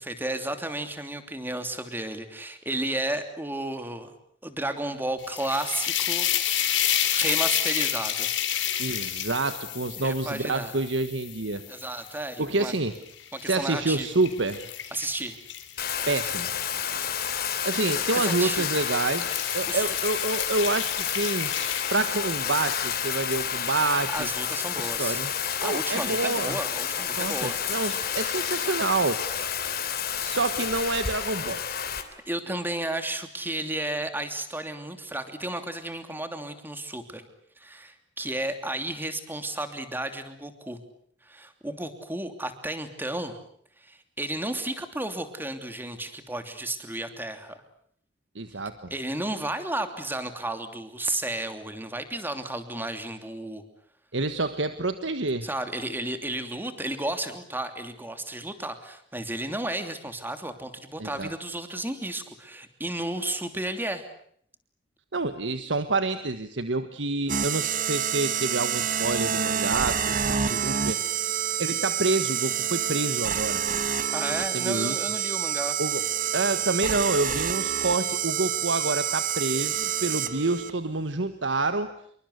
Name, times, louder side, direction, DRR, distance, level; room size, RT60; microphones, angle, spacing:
voice 1, 0.0-4.1 4.4-6.3 6.7-6.8 7.1-8.3 10.0-10.7 11.7-12.7 13.3-14.1 14.9-15.4 18.1-18.7 19.7-19.9 24.1-25.2 25.6-27.6 32.3-37.3 37.6-40.8 41.2-43.4 43.8-47.6 48.9-53.6 55.4-64.0 74.1-75.8, right 1 dB, 10° right, 8 dB, 3.0 m, -33 dB
sound 1, 5.2-12.4 13.0-16.9 17.8-18.1 18.5-22.7, left 10 dB, 80° left, 3.6 m, -30 dB
voice 2, 8.8-11.6 12.4-12.9 13.4-14.7 16.1-16.5 17.6-21.5 21.9-24.3 24.8-25.3 25.6-26.6 27.1-29.2 30.2-31.6 48.3-48.9 54.1-55.5 61.0-61.3 65.1-71.0 71.6-73.6 74.5-75.0 75.8-76.0 76.3-81.9, right 3 dB, 80° right, 10 dB, 1.5 m, -28 dB
Bathtub (filling or washing), 15.8-32.0, left 8 dB, 55° left, 3.1 m, -30 dB
sound 2, 67.3-80.7, right 8 dB, 50° right, 1.5 m, -27 dB
27.5 x 23.5 x 8.1 m, 0.65 s
head